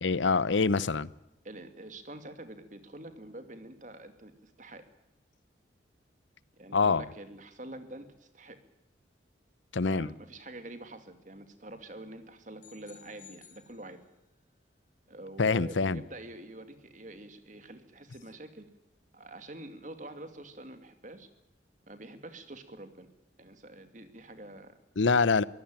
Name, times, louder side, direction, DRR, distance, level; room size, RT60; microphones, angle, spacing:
voice 1, 0.0-1.1 6.7-7.0 9.7-10.1 15.4-16.0 25.0-25.4, left 4 dB, 90° left, 0.8 m, -25 dB
voice 2, 0.5-0.9 1.4-4.8 6.5-8.6 9.8-14.0 15.1-18.7 19.1-21.3 21.9-23.1 23.4-24.8, right 1 dB, 45° right, 2.5 m, -46 dB
sound 1, 12.6-14.4, left 8 dB, 45° left, 6.2 m, -56 dB
24.0 x 16.5 x 8.9 m
head